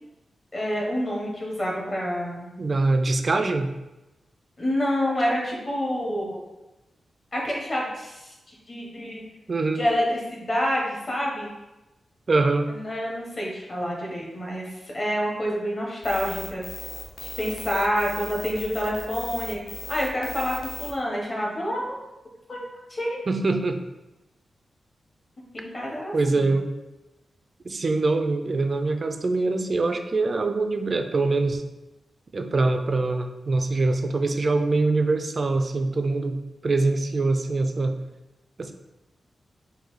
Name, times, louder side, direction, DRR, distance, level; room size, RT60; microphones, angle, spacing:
voice 1, 0.5-2.5 4.6-6.4 7.3-9.2 9.7-11.5 12.7-16.6 17.2-21.9 22.5-22.6 22.9-23.2 25.5-26.5, equal, 30° left, -2 dB, 1.1 m, -28 dB
voice 2, 2.6-3.7 9.5-9.9 12.3-12.7 23.3-23.8 26.1-26.7 27.6-31.6 32.3-38.0 38.6-38.7, right 3 dB, 35° right, 6 dB, 0.4 m, -24 dB
sound 1, 16.0-20.9, left 3 dB, 75° left, 0.7 m, -37 dB
3.9 x 2.6 x 4.7 m, 1.0 s
wide cardioid pair, 145°, 0 cm